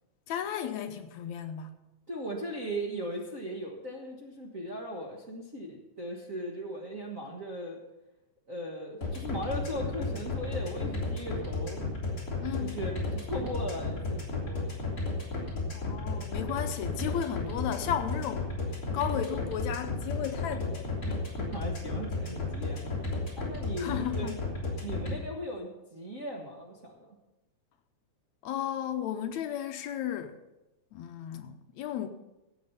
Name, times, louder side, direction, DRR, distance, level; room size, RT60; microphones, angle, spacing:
voice 1, 0.3-1.7 12.4-12.8 15.7-18.5 18.9-20.9 23.8-24.4 28.4-30.4 30.9-32.1, left 10 dB, 75° left, 7 dB, 1.9 m, -34 dB
voice 2, 2.1-7.8 8.5-11.8 12.5-14.9 21.1-21.2 21.5-24.3 24.8-27.2, equal, 40° right, -2 dB, 1.1 m, -38 dB
sound 1, 9.0-25.1, left 3 dB, 30° left, 3.5 m, -33 dB
16.5 x 7.9 x 5.6 m, 0.97 s
omnidirectional pair, 3.5 m